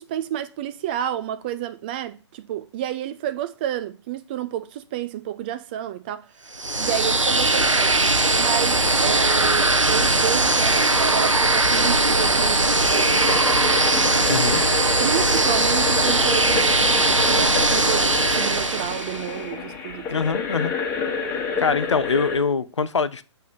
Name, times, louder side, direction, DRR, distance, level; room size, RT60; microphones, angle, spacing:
voice 1, 0.0-6.3 6.8-7.9 8.4-13.5 15.0-20.3, right 11 dB, 20° right, 0.3 m, -30 dB
Bird Park, 6.5-19.3, right 2 dB, 85° right, 0.6 m, -20 dB
sound 1, 8.7-22.4, left 5 dB, 15° left, 1.3 m, -30 dB
voice 2, 14.3-14.6 20.1-20.7 21.6-23.2, left 5 dB, 70° left, 0.6 m, -23 dB
7.5 x 3.4 x 5.6 m
figure-of-eight pair, 130°, 16 cm